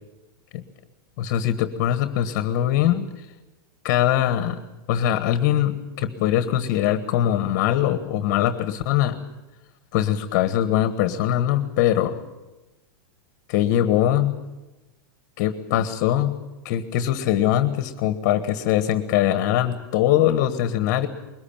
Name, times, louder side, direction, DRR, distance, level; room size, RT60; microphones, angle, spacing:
voice 1, 1.2-3.1 3.8-4.6 4.9-9.2 9.9-12.1 13.5-14.3 15.4-16.4 16.6-21.1, left 11 dB, 40° left, 11 dB, 1.5 m, -22 dB
22.0 x 19.5 x 8.8 m, 1.1 s
supercardioid pair, 165°, 12 cm